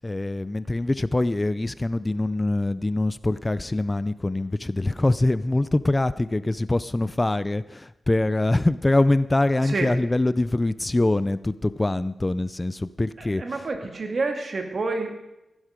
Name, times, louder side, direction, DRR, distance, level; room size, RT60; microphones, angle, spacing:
voice 1, 0.0-13.7, left 2 dB, 20° left, 16 dB, 0.4 m, -24 dB
voice 2, 9.6-9.9 13.2-15.1, right 3 dB, 55° right, 4 dB, 2.3 m, -28 dB
15.0 x 11.5 x 5.1 m, 0.94 s
cardioid pair, 75°, 0 cm